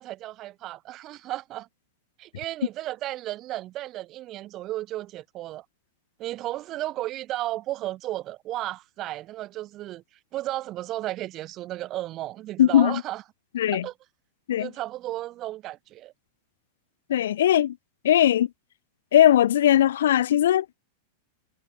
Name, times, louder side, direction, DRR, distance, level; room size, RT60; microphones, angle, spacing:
voice 1, 0.0-1.7 2.2-5.6 6.2-10.0 10.3-13.2 13.7-13.9 14.6-16.1, right 15 dB, 30° right, 0.3 m, -34 dB
voice 2, 12.6-13.0 13.5-13.9 14.5-14.7 17.1-17.8 18.0-18.5 19.1-20.8, left 11 dB, 85° left, 0.3 m, -19 dB
supercardioid pair, 155°, 0 cm